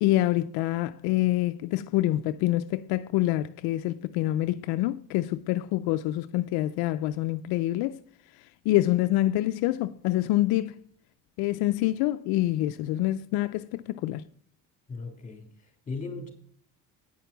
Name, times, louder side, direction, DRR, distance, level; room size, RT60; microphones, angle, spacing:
voice 1, 0.0-8.0 8.4-10.8 11.4-14.2, left 15 dB, 75° left, 0.5 m, -26 dB
voice 2, 14.9-16.3, left 3 dB, 20° left, 3.3 m, -38 dB
9.4 x 5.8 x 6.8 m
supercardioid pair, 95°, 38 cm